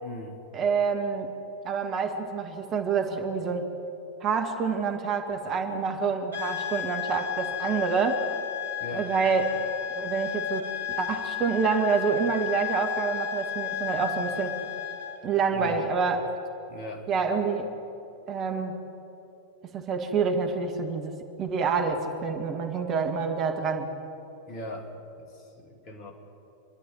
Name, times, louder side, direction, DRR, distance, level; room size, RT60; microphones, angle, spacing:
voice 1, 0.0-0.4 8.8-9.1 15.5-15.9 16.7-17.1 24.5-24.9 25.2-26.1, left 1 dB, 35° left, 3 dB, 2.8 m, -39 dB
voice 2, 0.5-1.3 1.6-3.7 4.2-8.2 8.9-9.6 9.9-10.7 11.0-14.6 15.2-16.2 17.1-17.7 18.3-18.8 19.7-21.1 21.4-23.9, right 5 dB, 30° right, 4 dB, 1.9 m, -27 dB
sound 1, 6.3-15.2, left 10 dB, 85° right, 2.8 m, -33 dB
26.5 x 11.5 x 9.1 m, 2.9 s
figure-of-eight pair, 90°, 0 cm